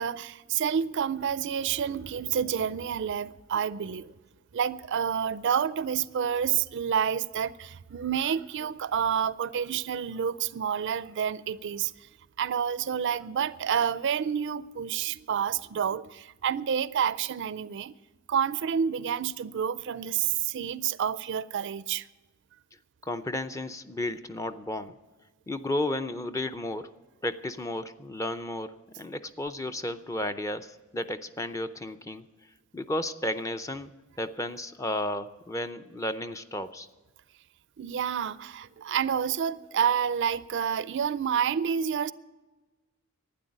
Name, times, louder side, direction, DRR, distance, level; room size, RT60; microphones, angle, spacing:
voice 1, 0.0-4.1 4.5-11.9 12.4-17.9 18.3-22.1 37.8-42.1, right 8 dB, 55° right, 0.4 m, -29 dB
voice 2, 23.0-25.0 25.5-26.9 27.2-32.2 32.7-33.9 34.2-36.9, left 1 dB, 15° left, 0.5 m, -33 dB
12.0 x 9.4 x 9.9 m
head